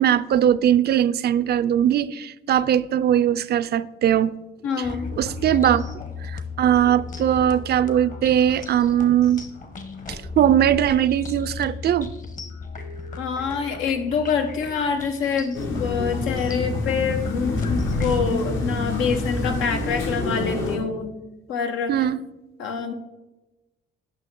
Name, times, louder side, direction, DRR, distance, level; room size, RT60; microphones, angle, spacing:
voice 1, 0.0-4.3 5.2-5.8 6.2-9.4 10.1-12.1 21.9-22.2, right 10 dB, 55° right, 16 dB, 0.4 m, -20 dB
voice 2, 4.6-5.1 13.2-21.1 21.5-22.1 22.6-22.9, left 6 dB, 90° left, 6 dB, 0.9 m, -26 dB
sound 1, 4.8-18.2, left 5 dB, 40° left, 1.1 m, -35 dB
sound 2, 15.5-20.8, left 2 dB, 75° left, 1.4 m, -27 dB
8.9 x 5.9 x 3.7 m, 1.0 s
cardioid pair, 90°, 20 cm